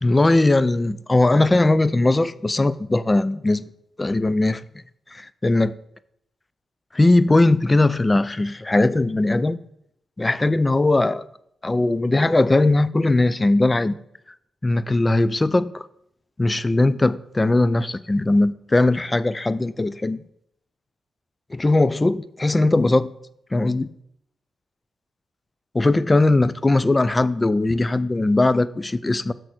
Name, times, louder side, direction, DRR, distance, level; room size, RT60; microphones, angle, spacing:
voice 1, 0.0-3.6 4.0-4.6 5.1-5.7 6.9-9.6 10.2-11.2 11.6-14.0 14.6-15.9 16.4-20.2 21.5-23.1 23.5-23.9 25.7-29.3, left 2 dB, 25° left, 0.4 m, -19 dB
6.4 x 4.5 x 6.2 m
supercardioid pair, 50°, 0 cm